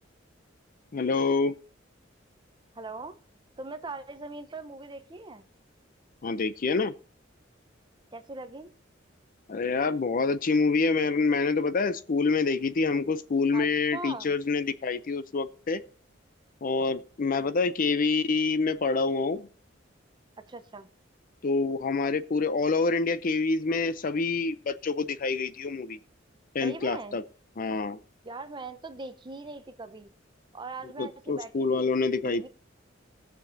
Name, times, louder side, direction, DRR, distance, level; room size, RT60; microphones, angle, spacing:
voice 1, 0.9-1.6 6.2-6.9 9.5-15.8 16.6-19.5 21.4-26.0 26.5-27.2 27.6-28.0 31.0-32.5, left 4 dB, 45° left, 0.5 m, -27 dB
voice 2, 2.7-3.2 3.6-5.5 8.1-8.7 13.5-14.3 20.5-20.9 26.6-27.2 28.2-30.1 30.5-31.9 32.2-32.5, right 3 dB, 25° right, 0.8 m, -40 dB
20.0 x 6.9 x 2.7 m
head